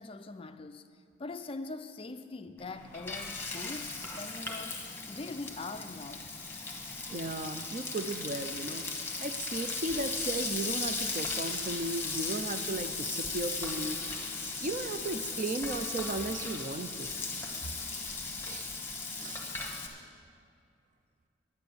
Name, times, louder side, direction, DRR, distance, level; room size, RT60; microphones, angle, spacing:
voice 1, 0.0-4.8 5.1-6.3, left 3 dB, 25° left, 0.4 m, -42 dB
Frying (food), 2.6-19.9, left 3 dB, 10° left, 1.1 m, -37 dB
voice 2, 7.1-8.8 9.2-14.0 14.6-17.1 18.5-18.7 19.2-19.4, right 2 dB, 40° right, 0.5 m, -35 dB
9.9 x 9.4 x 6.8 m
head